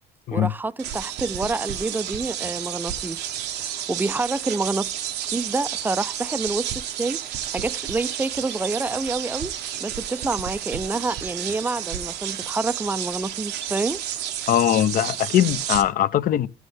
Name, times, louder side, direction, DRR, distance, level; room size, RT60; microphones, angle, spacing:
voice 1, 0.3-3.2 3.5-4.9 5.3-7.2 7.5-9.5 9.8-14.0, right 3 dB, 10° right, 0.4 m, -28 dB
sound 1, 0.8-15.8, right 10 dB, 80° right, 0.9 m, -31 dB
voice 2, 14.5-16.5, left 11 dB, 55° left, 0.5 m, -21 dB
14.5 x 6.3 x 3.3 m
cardioid pair, 110°, 17 cm